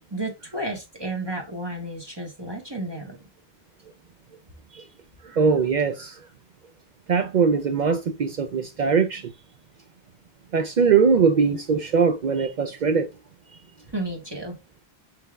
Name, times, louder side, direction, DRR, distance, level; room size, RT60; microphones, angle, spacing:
voice 1, 0.1-3.2 13.9-14.6, right 1 dB, 25° right, 1.1 m, -32 dB
voice 2, 5.3-6.2 7.1-9.3 10.5-13.1, right 5 dB, 55° right, 0.5 m, -21 dB
5.3 x 3.4 x 2.2 m
omnidirectional pair, 1.0 m